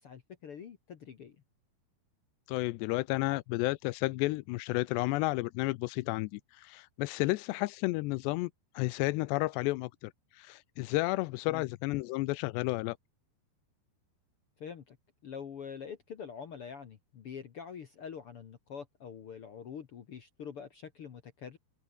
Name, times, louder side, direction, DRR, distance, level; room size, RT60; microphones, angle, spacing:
voice 1, 0.0-1.4 11.5-11.7 14.6-15.0 15.2-21.6, left 7 dB, 70° left, 1.3 m, -45 dB
voice 2, 2.5-8.5 8.8-10.1 10.4-13.0, left 21 dB, 85° left, 2.8 m, -32 dB
omnidirectional pair, 4.9 m